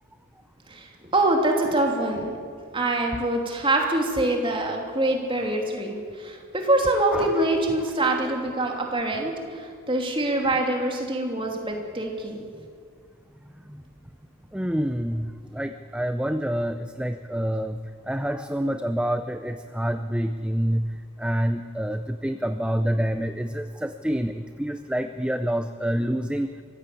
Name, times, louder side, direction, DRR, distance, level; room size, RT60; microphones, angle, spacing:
voice 1, 0.7-2.4 2.7-12.4, right 2 dB, 25° right, 1 dB, 3.0 m, -25 dB
voice 2, 14.5-15.3 15.6-17.8 18.1-20.9 21.2-24.3 24.6-26.5, equal, 5° right, 9 dB, 0.5 m, -27 dB
24.0 x 15.5 x 8.5 m, 2.1 s
head